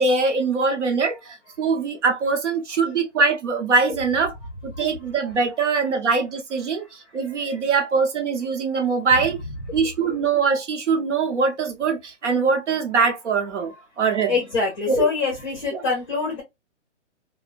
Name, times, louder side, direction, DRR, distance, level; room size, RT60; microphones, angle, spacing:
voice 1, 0.0-4.3 4.6-9.4 9.7-14.4 14.9-15.1 15.7-15.8, right 4 dB, 70° right, 0.8 m, -22 dB
voice 2, 14.3-16.4, left 4 dB, 30° left, 0.7 m, -25 dB
2.4 x 2.1 x 2.4 m
hypercardioid pair, 170°, 36 cm